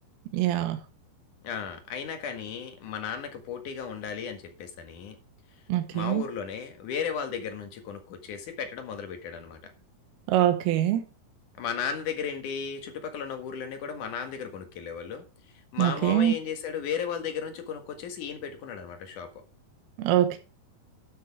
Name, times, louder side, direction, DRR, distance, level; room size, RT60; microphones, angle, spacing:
voice 1, 0.3-0.8 5.7-6.2 10.3-11.0 15.8-16.3 20.0-20.4, right 12 dB, 85° right, 2.9 m, -24 dB
voice 2, 1.4-5.2 5.9-9.7 11.6-15.2 15.7-19.3, left 7 dB, 60° left, 3.0 m, -35 dB
13.0 x 6.5 x 4.8 m
omnidirectional pair, 4.4 m